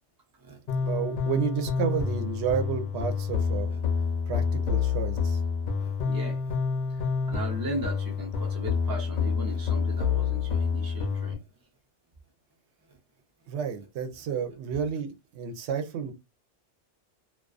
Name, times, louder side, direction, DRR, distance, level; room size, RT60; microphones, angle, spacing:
sound 1, 0.7-11.3, left 5 dB, 55° left, 0.6 m, -28 dB
voice 1, 0.8-3.7 4.3-5.4 13.5-16.1, right 7 dB, 70° right, 0.8 m, -31 dB
voice 2, 5.8-6.6 7.3-11.4, right 1 dB, 35° right, 0.3 m, -37 dB
2.3 x 2.2 x 2.3 m
omnidirectional pair, 1.2 m